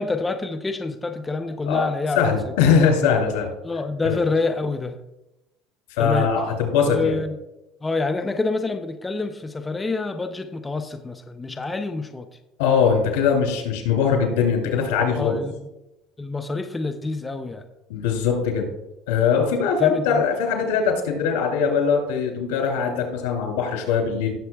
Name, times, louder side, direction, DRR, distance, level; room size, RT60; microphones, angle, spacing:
voice 1, 0.0-2.5 3.6-5.0 6.0-6.3 6.9-7.4 7.8-12.3 15.1-15.7 16.2-17.6 19.8-20.2, left 3 dB, 15° left, 7 dB, 0.6 m, -27 dB
voice 2, 2.1-3.5 4.0-4.2 6.0-7.2 12.6-15.4 17.9-18.7 19.1-24.3, left 6 dB, 90° left, 2 dB, 2.8 m, -21 dB
17.0 x 7.4 x 2.3 m, 0.93 s
cardioid pair, 130°, 0 cm